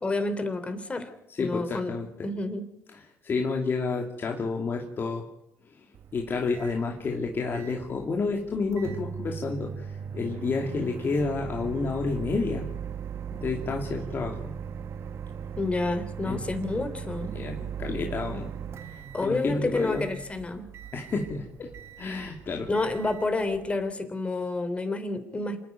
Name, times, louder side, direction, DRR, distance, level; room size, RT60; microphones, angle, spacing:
voice 1, 0.0-1.1 1.4-1.9 2.2-2.7 15.6-17.3 19.1-20.7 22.7-25.6, left 2 dB, 25° left, 9 dB, 3.3 m, -29 dB
voice 2, 1.3-2.3 3.2-5.2 6.1-12.7 13.3-14.5 16.3-16.4 17.3-18.5 18.9-20.1 20.9-21.7 22.0-22.7, left 4 dB, 40° left, 1 dB, 2.7 m, -30 dB
Microwave oven, 5.9-23.9, right 7 dB, 55° right, 1.1 m, -39 dB
26.5 x 10.5 x 9.4 m, 0.88 s
cardioid pair, 100°, 5 cm